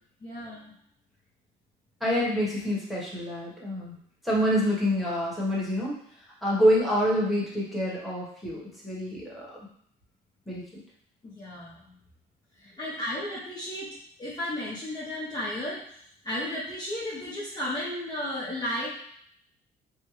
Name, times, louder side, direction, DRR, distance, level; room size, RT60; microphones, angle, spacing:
voice 1, 0.2-0.7 11.2-11.9 12.6-13.9 14.2-15.9 16.2-18.9, left 1 dB, 25° left, -7 dB, 0.7 m, -34 dB
voice 2, 2.0-3.9 4.2-6.0 6.4-9.5 10.5-10.6, equal, ahead, -6 dB, 1.2 m, -26 dB
3.4 x 2.2 x 3.1 m, 0.65 s
cardioid pair, 110°, 17 cm